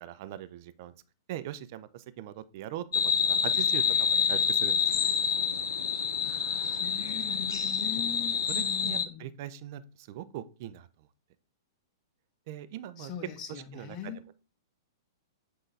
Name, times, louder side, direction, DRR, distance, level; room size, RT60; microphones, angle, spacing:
voice 1, 0.0-0.9 1.3-4.8 8.5-10.9 12.5-13.1 13.5-14.3, right 12 dB, 50° right, 14 dB, 0.5 m, -41 dB
sound 1, 2.9-9.0, left 7 dB, 75° left, 0.6 m, -27 dB
voice 2, 6.2-9.3 13.0-14.2, left 8 dB, 35° left, 6 dB, 1.2 m, -41 dB
7.5 x 3.8 x 3.3 m, 0.35 s
hypercardioid pair, 110°, 2 cm